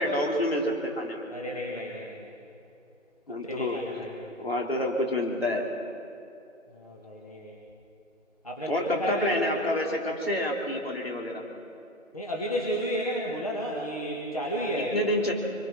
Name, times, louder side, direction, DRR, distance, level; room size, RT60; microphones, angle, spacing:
voice 1, 0.0-1.2 3.3-3.8 4.4-5.7 8.7-11.4 14.8-15.3, left 1 dB, 50° left, 0 dB, 3.4 m, -28 dB
voice 2, 1.3-2.3 3.4-4.2 6.7-7.6 8.4-9.5 12.1-15.1, equal, 30° left, -3 dB, 1.9 m, -32 dB
24.5 x 22.5 x 6.0 m, 2.7 s
figure-of-eight pair, 170°, 40 cm